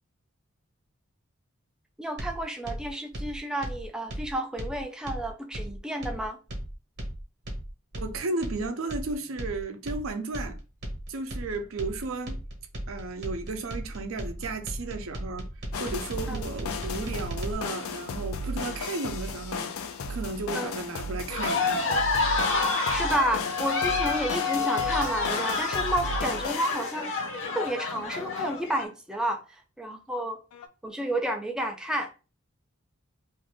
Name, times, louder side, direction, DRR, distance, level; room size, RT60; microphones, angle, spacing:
voice 1, 2.0-6.4 16.3-16.4 20.5-20.7 22.9-27.2 27.5-30.4 30.8-32.1, right 1 dB, 5° right, 0.3 m, -31 dB
sound 1, 2.2-17.5, right 1 dB, 50° right, 0.9 m, -36 dB
voice 2, 8.0-10.6 11.1-12.4 12.9-15.5 15.8-19.7 20.1-22.0, right 3 dB, 70° right, 0.5 m, -34 dB
sound 2, 15.7-28.8 30.5-30.7, left 2 dB, 80° left, 0.4 m, -35 dB
sound 3, 21.3-28.8, left 4 dB, 55° left, 0.8 m, -28 dB
2.6 x 2.4 x 3.5 m
head